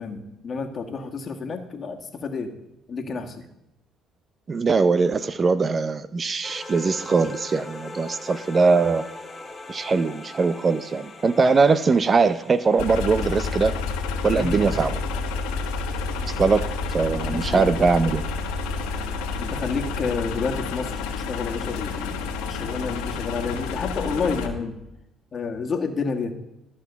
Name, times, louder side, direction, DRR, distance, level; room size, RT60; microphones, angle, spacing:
voice 1, 0.0-2.5 2.9-3.4 14.3-14.7 17.3-17.7 19.4-24.7 25.3-26.3, left 4 dB, 45° left, 5 dB, 1.6 m, -30 dB
voice 2, 4.5-9.1 9.7-13.7 14.2-14.9 16.2-16.7 16.9-18.2, right 4 dB, 35° right, 15 dB, 0.5 m, -21 dB
sound 1, 6.4-15.0, left 3 dB, 20° left, 1.8 m, -41 dB
sound 2, 12.8-24.5, left 4 dB, 90° left, 1.3 m, -29 dB
13.0 x 6.2 x 6.9 m, 0.91 s
supercardioid pair, 80°, 0 cm